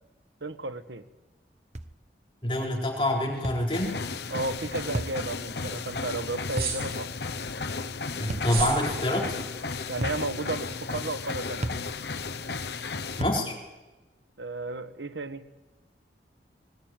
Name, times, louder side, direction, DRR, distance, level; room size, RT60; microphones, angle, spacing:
voice 1, 0.4-1.0 4.3-7.1 9.9-11.6 14.4-15.5, right 2 dB, 90° right, 10 dB, 1.4 m, -33 dB
sound 1, 1.7-2.0 3.4-3.7 4.9-5.2 6.6-6.8 8.3-8.6 10.0-10.3 11.6-11.9 13.2-13.5, right 1 dB, 40° right, 0.9 m, -32 dB
voice 2, 2.4-4.0 8.2-9.4 13.2-13.6, left 1 dB, 30° left, 0 dB, 4.1 m, -26 dB
sound 2, 3.7-13.2, left 4 dB, 70° left, 0.9 m, -34 dB
sound 3, 6.5-7.1 8.4-8.9, right 5 dB, 60° right, 6.0 m, -32 dB
20.0 x 20.0 x 9.0 m, 1.1 s
head